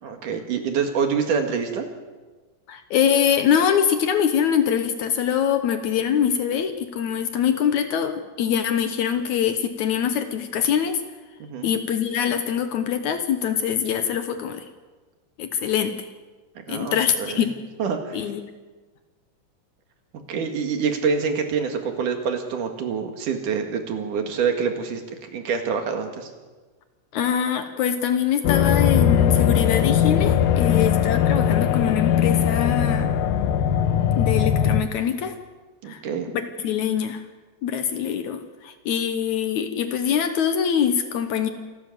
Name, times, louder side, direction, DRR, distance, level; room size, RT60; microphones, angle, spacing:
voice 1, 0.0-1.9 11.4-11.7 16.7-17.5 17.8-18.3 20.1-26.3 30.8-30.9 35.8-36.3, right 6 dB, 65° right, 5 dB, 3.3 m, -26 dB
voice 2, 2.7-11.0 11.6-14.7 15.4-16.1 16.7-17.6 18.1-18.4 27.1-33.1 34.2-35.4 35.9-36.0 36.3-37.2 37.6-41.5, left 8 dB, 65° left, 8 dB, 2.1 m, -23 dB
sound 1, 28.4-34.8, left 9 dB, 90° left, 2.7 m, -20 dB
26.5 x 12.5 x 7.8 m, 1.3 s
omnidirectional pair, 4.0 m